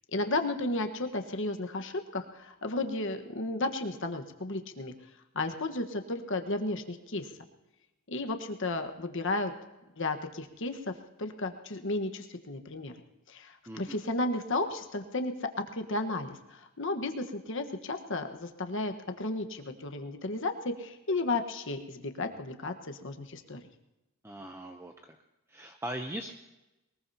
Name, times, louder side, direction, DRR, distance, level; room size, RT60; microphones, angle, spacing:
voice 1, 0.1-4.9 5.3-7.3 8.1-9.5 10.0-12.9 13.3-23.6, left 2 dB, 60° left, 5 dB, 1.4 m, -33 dB
voice 2, 13.7-14.0 24.2-25.2 25.5-26.3, right 1 dB, 10° right, 4 dB, 0.7 m, -40 dB
22.0 x 20.5 x 2.9 m, 0.98 s
head